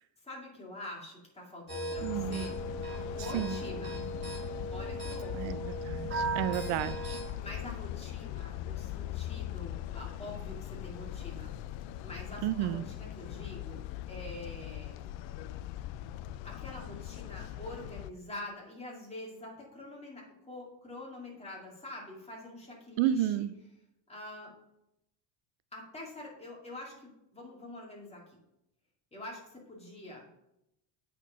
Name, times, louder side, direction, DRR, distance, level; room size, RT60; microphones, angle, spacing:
voice 1, 0.2-2.6 3.1-4.0 4.7-5.6 7.4-11.5 12.0-13.8 14.1-14.9 16.4-23.5 24.1-24.5 25.7-28.4 29.1-30.2, left 1 dB, 10° left, -3 dB, 2.2 m, -45 dB
sound 1, 1.7-7.2, right 2 dB, 20° right, 2.6 m, -37 dB
sound 2, 2.0-18.1, left 13 dB, 65° left, 0.5 m, -40 dB
voice 2, 2.0-2.4 3.3-3.5 5.3-5.6 5.9-7.2 12.4-12.8 23.0-23.5, right 11 dB, 75° right, 14 dB, 0.6 m, -31 dB
8.2 x 4.5 x 5.6 m, 0.84 s
cardioid pair, 160°, 49 cm